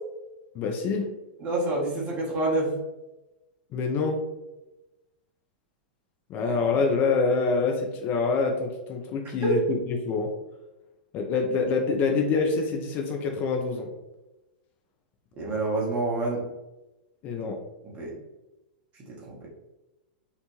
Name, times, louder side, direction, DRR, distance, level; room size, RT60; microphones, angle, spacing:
voice 1, 0.5-1.1 3.7-4.2 6.3-10.3 11.1-13.9 17.2-17.6, left 4 dB, 35° left, 2 dB, 0.4 m, -26 dB
voice 2, 1.4-2.7 9.4-9.6 15.4-16.4 17.9-18.1 19.2-19.4, right 2 dB, 30° right, -3 dB, 0.9 m, -27 dB
2.8 x 2.1 x 2.9 m, 1.0 s
figure-of-eight pair, 100°, 5 cm